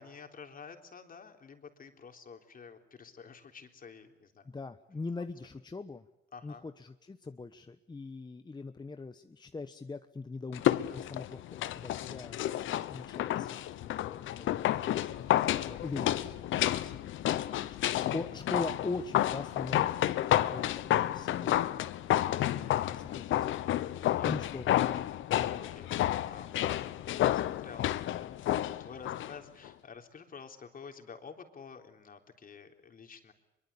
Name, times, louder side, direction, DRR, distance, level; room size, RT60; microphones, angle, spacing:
voice 1, 0.0-4.5 6.3-6.7 13.1-13.3 25.6-26.9 27.3-33.3, left 5 dB, 45° left, 5 dB, 3.7 m, -50 dB
voice 2, 4.5-6.1 6.4-13.5 14.1-16.4 16.7-17.1 17.5-23.9 24.2-24.9 25.4-25.6, left 3 dB, 20° left, 9 dB, 1.1 m, -42 dB
sound 1, 10.5-29.3 29.6-29.7, left 13 dB, 80° left, 1.0 m, -31 dB
24.0 x 23.5 x 8.4 m, 1.0 s
cardioid pair, 90°, 20 cm